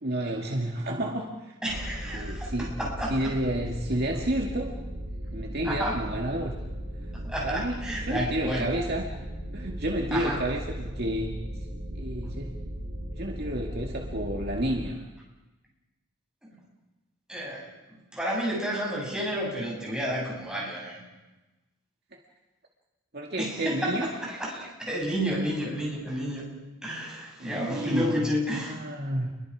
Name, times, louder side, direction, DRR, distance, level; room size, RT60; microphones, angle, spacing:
voice 1, 0.0-1.6 2.1-2.7 3.1-4.7 5.3-6.6 7.4-9.0 9.5-11.4 11.9-12.5 13.2-15.0 23.1-24.1 27.4-28.2 28.7-29.3, right 1 dB, 50° right, 0 dB, 2.3 m, -30 dB
voice 2, 1.6-3.3 5.6-6.1 7.1-8.8 10.1-10.4 16.4-16.6 17.3-21.0 23.4-26.4 26.8-28.8, equal, 5° right, -4 dB, 7.2 m, -31 dB
sound 1, 1.7-14.9, equal, 90° right, 6.6 m, -37 dB
29.5 x 23.0 x 5.0 m, 1.1 s
head